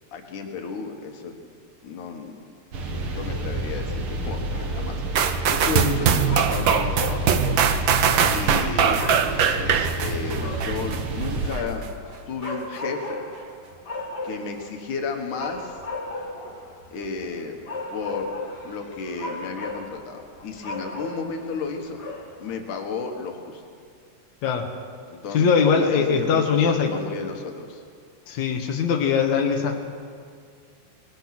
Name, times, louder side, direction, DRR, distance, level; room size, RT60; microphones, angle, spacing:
voice 1, 0.1-1.3 1.8-2.3 2.9-7.9 8.3-9.1 9.5-11.9 12.3-13.3 14.2-15.8 16.9-17.6 17.9-22.0 22.4-23.6 25.1-25.5 25.8-27.8, left 5 dB, 90° left, 3 dB, 3.2 m, -33 dB
sound 1, 2.7-11.5, right 2 dB, 50° right, 2.2 m, -29 dB
sound 2, 4.5-22.6, left 2 dB, 35° left, 2.7 m, -37 dB
sound 3, 5.2-11.0 11.5-11.6, right 7 dB, 75° right, 1.1 m, -21 dB
voice 2, 25.3-26.9 28.3-29.8, left 6 dB, 70° left, 1 dB, 2.8 m, -21 dB
24.0 x 19.5 x 6.1 m, 2.2 s
omnidirectional pair, 3.4 m